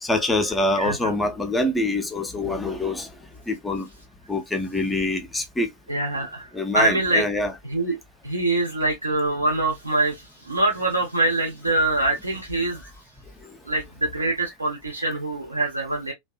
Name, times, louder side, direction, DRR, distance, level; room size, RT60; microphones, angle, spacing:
voice 1, 0.0-3.1 3.5-3.9 4.3-5.7 6.5-7.5, left 2 dB, 10° left, 0.5 m, -25 dB
voice 2, 0.8-1.1 5.9-7.2 7.6-8.0 8.2-12.8 13.7-16.1, right 2 dB, 80° right, 0.6 m, -24 dB
2.7 x 2.2 x 2.3 m
figure-of-eight pair, 90°, 0 cm